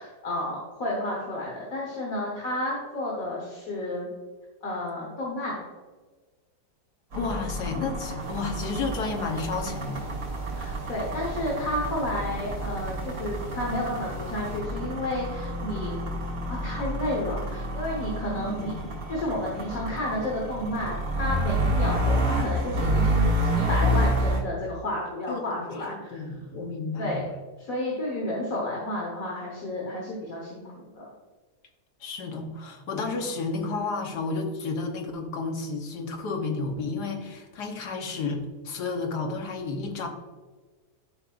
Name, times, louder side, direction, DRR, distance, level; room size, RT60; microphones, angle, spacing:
voice 1, 0.0-4.1 4.6-5.6 10.5-16.0 16.5-18.7 19.1-26.2 27.0-27.2 27.6-31.0, left 1 dB, 60° left, -3 dB, 1.7 m, -31 dB
voice 2, 7.1-10.1 18.3-18.7 25.3-27.4 32.0-40.1, left 4 dB, 80° left, 3 dB, 1.6 m, -32 dB
sound 1, 7.1-24.4, right 1 dB, 70° right, 2.6 m, -29 dB
sound 2, 8.2-14.6, left 1 dB, 35° right, 1.1 m, -43 dB
11.5 x 5.4 x 2.5 m, 1.4 s
omnidirectional pair, 1.7 m